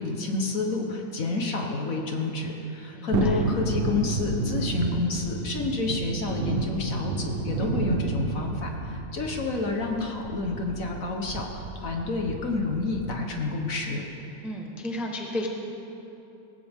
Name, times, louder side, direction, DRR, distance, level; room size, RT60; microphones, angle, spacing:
voice 1, 0.0-14.0, left 3 dB, 55° left, 2 dB, 1.5 m, -29 dB
voice 2, 2.9-3.4 14.4-15.5, left 1 dB, ahead, 1 dB, 0.9 m, -33 dB
Thunderstorm, 3.1-13.3 13.7-13.8, right 3 dB, 45° right, 0.8 m, -31 dB
18.5 x 15.5 x 3.6 m, 3.0 s
omnidirectional pair, 1.9 m